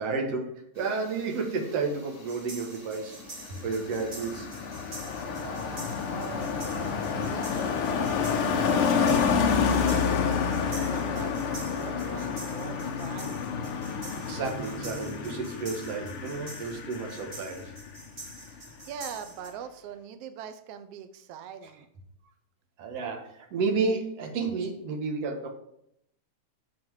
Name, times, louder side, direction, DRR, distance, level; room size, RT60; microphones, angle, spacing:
voice 1, 0.0-4.5 14.2-17.7 22.8-25.5, right 4 dB, 60° right, 1 dB, 2.4 m, -31 dB
sound 1, 0.7-8.8, left 1 dB, 20° left, 2.5 m, -51 dB
sound 2, 2.3-19.5, right 2 dB, 20° right, 3.5 m, -46 dB
Car passing by, 3.2-18.0 18.3-18.6, left 6 dB, 65° left, 1.4 m, -29 dB
voice 2, 3.9-4.3 5.2-10.1 10.7-13.5 18.9-21.9, right 8 dB, 80° right, 9 dB, 1.4 m, -42 dB
9.5 x 6.0 x 4.7 m, 0.75 s
omnidirectional pair, 3.5 m